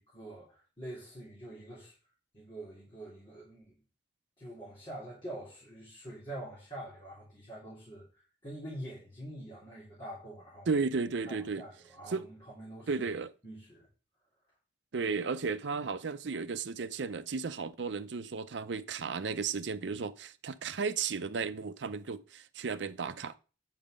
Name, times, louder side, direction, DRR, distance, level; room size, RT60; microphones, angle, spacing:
voice 1, 0.0-1.9 2.3-3.8 4.4-10.7 11.2-13.1 13.4-13.9, right 1 dB, 30° left, 3.6 m, -45 dB
voice 2, 10.7-11.6 12.1-12.2 12.9-13.3 14.9-23.4, right 5 dB, 85° right, 0.6 m, -34 dB
9.0 x 5.6 x 5.1 m
head